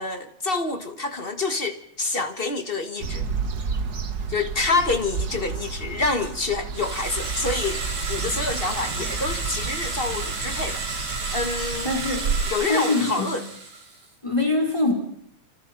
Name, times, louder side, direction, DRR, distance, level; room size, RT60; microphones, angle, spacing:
voice 1, 0.0-3.3 4.3-7.8 8.1-10.8 11.3-11.9 12.5-13.4, left 3 dB, 30° left, 1.0 m, -27 dB
sound 1, 3.0-12.5, right 5 dB, 45° right, 1.5 m, -31 dB
sound 2, 6.7-14.0, right 3 dB, 75° right, 7.0 m, -32 dB
voice 2, 11.8-12.2 12.7-13.4 14.2-14.9, left 2 dB, 10° left, 4.3 m, -23 dB
29.0 x 27.0 x 5.9 m
omnidirectional pair, 3.3 m